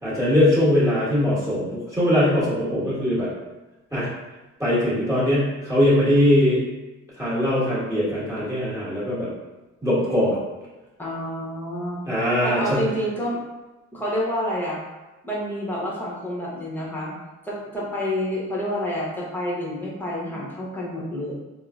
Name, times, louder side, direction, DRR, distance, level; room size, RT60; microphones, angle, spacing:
voice 1, 0.0-3.3 3.9-4.1 4.6-6.6 7.2-9.3 9.8-10.4 12.1-12.8, left 1 dB, 10° right, -9 dB, 1.5 m, -21 dB
voice 2, 11.0-12.0 12.4-13.4 13.9-14.8 15.2-17.1 17.4-21.3, equal, 5° left, -5 dB, 0.9 m, -28 dB
3.6 x 2.0 x 2.4 m, 1.1 s
cardioid pair, 90°, 30 cm